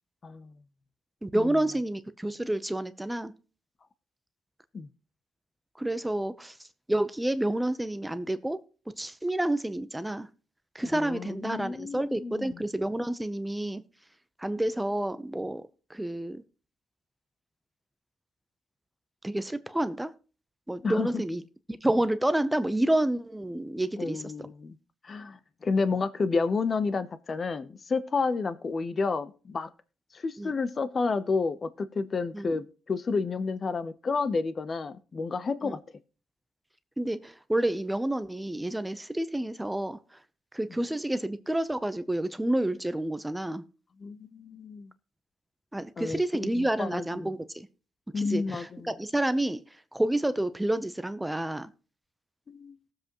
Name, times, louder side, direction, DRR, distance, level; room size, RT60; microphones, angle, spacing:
voice 1, 1.2-3.3 5.8-6.6 6.9-8.6 9.0-10.3 10.7-13.8 14.4-15.6 15.9-16.4 19.2-20.1 20.7-21.4 21.7-24.2 30.4-30.5 32.3-32.4 35.6-35.8 37.0-40.0 40.5-43.6 45.7-47.7 48.2-49.6 49.9-51.7, right 1 dB, 10° right, 12 dB, 0.7 m, -29 dB
voice 2, 10.8-12.6 20.8-21.2 24.0-24.8 25.0-29.7 30.1-35.8 44.0-44.9 46.0-47.3 48.1-48.9 52.5-52.8, left 4 dB, 40° left, 13 dB, 0.8 m, -30 dB
18.5 x 7.6 x 3.0 m, 0.35 s
cardioid pair, 90°, 0 cm